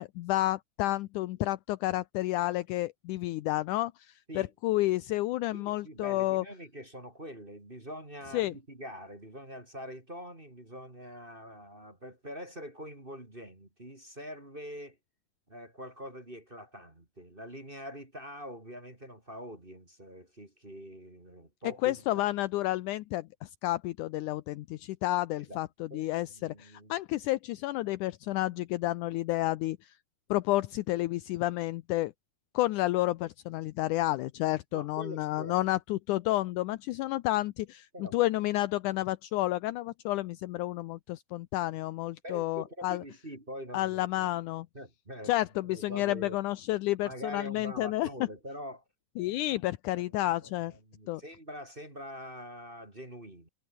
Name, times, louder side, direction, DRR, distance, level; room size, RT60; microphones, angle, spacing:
voice 1, 0.0-6.4 8.3-8.5 21.8-29.9 30.3-32.1 32.5-43.0 43.7-44.7 45.2-48.1 49.2-50.7 51.1-51.2, left 16 dB, 75° left, 2.0 m, -30 dB
voice 2, 5.5-15.0 15.5-22.3 25.5-25.6 25.9-26.9 34.7-35.7 37.9-38.2 42.2-44.3 44.7-45.3 45.6-46.4 47.0-48.8 49.5-49.6 49.9-53.5, equal, 15° right, 3.0 m, -44 dB
omnidirectional pair, 4.1 m